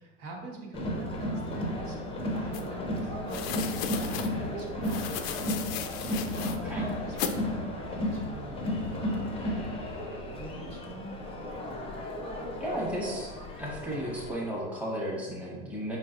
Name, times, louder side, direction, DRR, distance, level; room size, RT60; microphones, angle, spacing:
voice 1, 0.0-5.4 6.3-6.5 7.0-11.2, right 2 dB, 65° right, -2 dB, 1.2 m, -45 dB
Crowd, 0.7-14.3, left 1 dB, 20° left, 0.6 m, -34 dB
sound 1, 2.5-2.6 3.3-4.3 4.8-6.6 7.2-7.4, left 9 dB, 70° left, 0.5 m, -35 dB
voice 2, 12.6-13.3 13.6-16.0, equal, 5° right, -5 dB, 1.0 m, -34 dB
4.9 x 3.2 x 2.5 m, 1.3 s
supercardioid pair, 115°, 31 cm